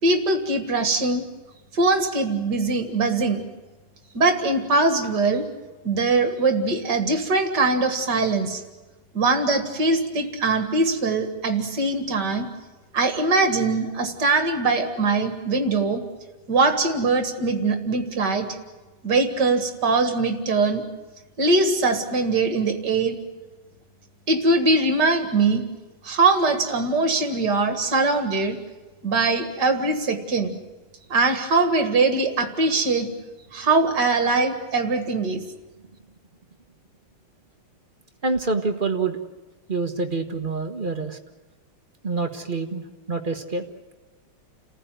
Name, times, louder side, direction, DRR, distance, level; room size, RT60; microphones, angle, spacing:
voice 1, 0.0-1.2 1.7-3.4 4.1-5.5 5.8-8.6 9.1-12.5 12.9-16.0 16.5-18.5 19.0-20.8 21.4-23.2 24.3-25.6 26.0-28.6 29.0-30.6 31.1-33.1 33.5-35.4, right 3 dB, 50° right, 6 dB, 2.4 m, -22 dB
voice 2, 38.2-39.2 39.7-41.2 42.0-42.8 43.1-43.6, right 3 dB, 30° right, 5 dB, 1.2 m, -26 dB
29.5 x 15.0 x 9.3 m, 1.2 s
omnidirectional pair, 2.4 m